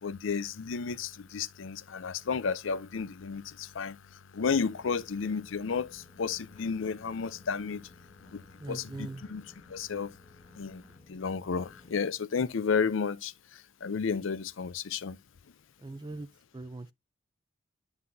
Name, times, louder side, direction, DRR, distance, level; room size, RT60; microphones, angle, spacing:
voice 1, 0.0-7.9 8.3-10.2 10.5-15.2, left 5 dB, 75° left, 0.5 m, -33 dB
sound 1, 4.4-12.0, left 1 dB, 30° left, 1.8 m, -58 dB
voice 2, 8.6-9.2 15.8-16.3 16.5-16.9, right 2 dB, 20° right, 0.4 m, -40 dB
9.7 x 5.7 x 2.7 m
head